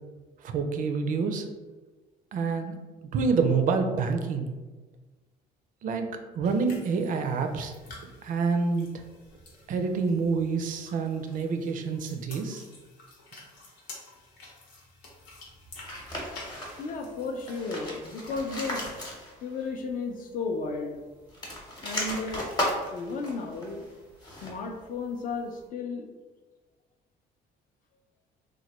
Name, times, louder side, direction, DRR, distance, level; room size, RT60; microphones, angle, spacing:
voice 1, 0.4-1.5 2.3-2.8 3.1-4.5 5.8-6.1 6.4-7.7 8.2-8.9 9.7-12.6, right 4 dB, 55° right, 6 dB, 0.4 m, -27 dB
sound 1, 6.4-17.7, left 2 dB, 90° left, 0.9 m, -50 dB
sound 2, 15.8-17.0 17.4-19.6 19.9-20.0 21.2-24.7, left 1 dB, 25° left, 0.8 m, -35 dB
voice 2, 16.8-18.9 19.4-21.0 21.8-22.5 22.9-23.8 24.4-26.1, left 4 dB, 55° left, 4 dB, 0.5 m, -34 dB
3.1 x 2.2 x 2.9 m, 1.3 s
cardioid pair, 110°, 17 cm